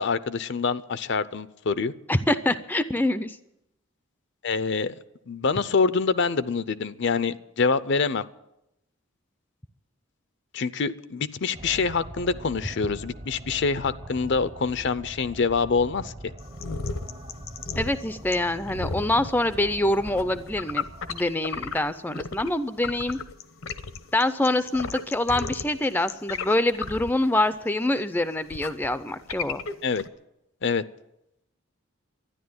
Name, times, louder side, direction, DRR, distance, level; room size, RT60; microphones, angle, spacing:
voice 1, 0.0-1.9 4.4-4.9 5.3-8.2 10.5-16.3 29.8-30.0 30.6-30.8, left 4 dB, 55° left, 14 dB, 0.6 m, -25 dB
voice 2, 2.1-3.4 17.8-23.2 24.1-29.6, left 1 dB, 10° left, 12 dB, 0.5 m, -25 dB
sound 1, 11.5-21.2, right 1 dB, 30° right, 0.8 m, -42 dB
sound 2, 16.4-22.5 22.8-30.1, left 5 dB, 70° left, 0.9 m, -35 dB
12.5 x 10.5 x 9.5 m, 0.87 s
head